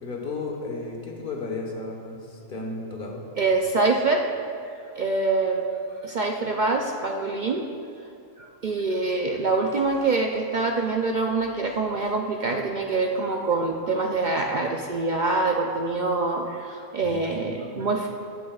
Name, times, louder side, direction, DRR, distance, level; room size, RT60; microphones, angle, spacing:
voice 1, 0.0-3.2 17.0-17.9, left 3 dB, 40° left, 0 dB, 1.3 m, -34 dB
voice 2, 3.4-4.3 5.0-5.7 6.0-7.7 8.4-18.1, right 3 dB, 65° right, 1 dB, 0.4 m, -25 dB
14.0 x 9.6 x 2.4 m, 2.5 s
omnidirectional pair, 1.5 m